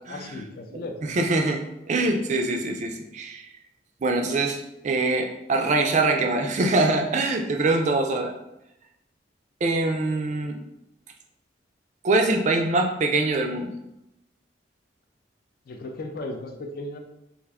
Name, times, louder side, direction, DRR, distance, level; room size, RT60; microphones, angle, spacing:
voice 1, 0.1-1.2 15.7-17.0, left 2 dB, 50° left, 4 dB, 0.4 m, -36 dB
voice 2, 1.1-3.5 4.0-8.3 9.6-10.6 12.0-13.7, right 2 dB, 40° right, 4 dB, 0.3 m, -24 dB
3.4 x 2.5 x 3.4 m, 0.88 s
head